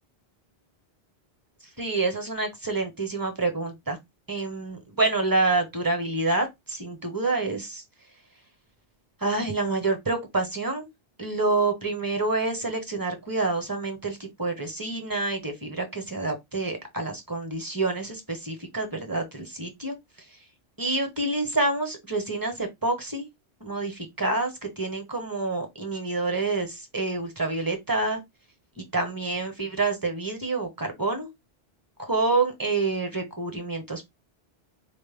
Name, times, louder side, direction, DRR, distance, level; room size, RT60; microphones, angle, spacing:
voice 1, 1.8-4.0 4.3-7.8 9.2-10.9 11.2-20.0 20.8-23.3 23.6-28.2 28.8-31.3 32.0-34.0, right 3 dB, 20° right, 0.8 m, -27 dB
4.3 x 2.1 x 3.4 m
omnidirectional pair, 1.1 m